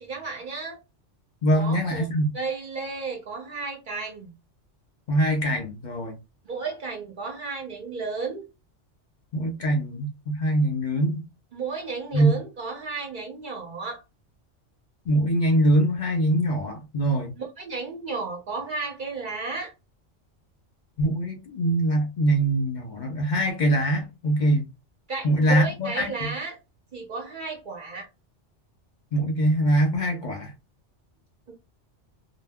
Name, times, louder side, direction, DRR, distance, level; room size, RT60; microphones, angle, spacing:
voice 1, 0.0-0.8 1.5-2.1 2.3-4.3 6.4-8.5 11.5-14.0 17.4-19.7 25.1-26.6 26.9-28.1 31.5-31.6, right 4 dB, 55° right, 0.6 m, -33 dB
voice 2, 1.4-2.3 5.1-6.1 9.3-11.2 12.1-12.3 15.1-17.3 21.0-24.6 25.2-26.3 29.1-30.5, right 1 dB, 50° left, 0.6 m, -23 dB
2.2 x 2.0 x 3.4 m
omnidirectional pair, 1.2 m